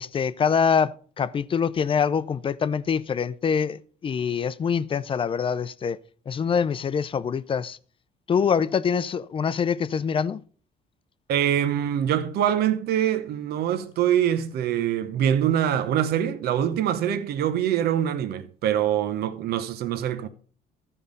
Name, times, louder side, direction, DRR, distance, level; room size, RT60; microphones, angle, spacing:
voice 1, 0.0-6.0 6.3-7.8 8.3-10.4, left 6 dB, 30° left, 0.5 m, -25 dB
voice 2, 11.3-20.3, right 10 dB, 70° right, 0.9 m, -24 dB
14.0 x 5.5 x 5.2 m
cardioid pair, 110°, 17 cm